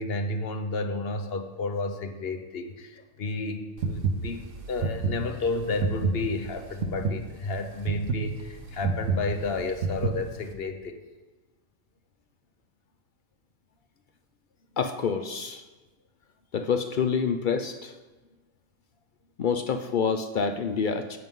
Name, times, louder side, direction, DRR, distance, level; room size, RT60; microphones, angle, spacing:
voice 1, 0.0-11.0, left 3 dB, 50° left, 8 dB, 1.0 m, -31 dB
sound 1, 3.8-10.5, right 4 dB, 65° right, 1.3 m, -29 dB
voice 2, 14.8-15.6 16.5-17.9 19.4-21.2, left 6 dB, 70° left, 8 dB, 0.4 m, -27 dB
13.5 x 9.1 x 3.7 m, 1.2 s
omnidirectional pair, 1.5 m